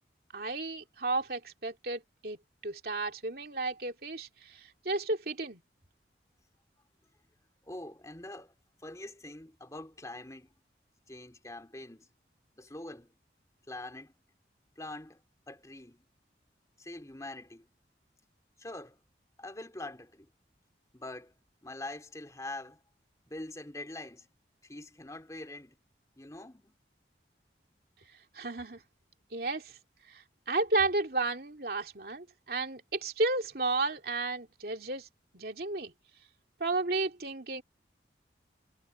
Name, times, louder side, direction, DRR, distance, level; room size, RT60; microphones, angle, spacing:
voice 1, 0.3-5.6 28.3-28.8 29.3-29.8 30.1-35.1 35.3-35.9 36.6-37.6, right 3 dB, 55° right, 2.9 m, -33 dB
voice 2, 7.6-8.5 8.8-10.5 11.1-12.1 12.6-13.1 13.7-14.1 14.8-15.2 15.5-16.0 16.8-17.7 18.6-19.0 19.4-20.3 20.9-21.3 21.6-22.8 23.2-24.3 24.6-25.8 26.2-26.7, left 2 dB, 20° left, 2.7 m, -44 dB
head